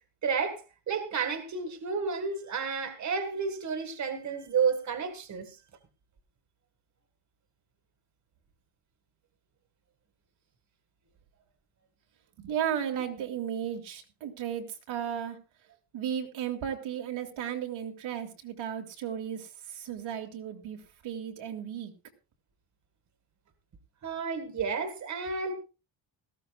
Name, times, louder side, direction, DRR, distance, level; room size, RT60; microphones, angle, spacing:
voice 1, 0.2-5.6 24.0-25.5, right 5 dB, 35° right, 1.9 m, -31 dB
voice 2, 12.4-15.4 15.9-21.9, right 9 dB, 75° right, 2.4 m, -35 dB
18.5 x 14.5 x 2.4 m
cardioid pair, 170°, 48 cm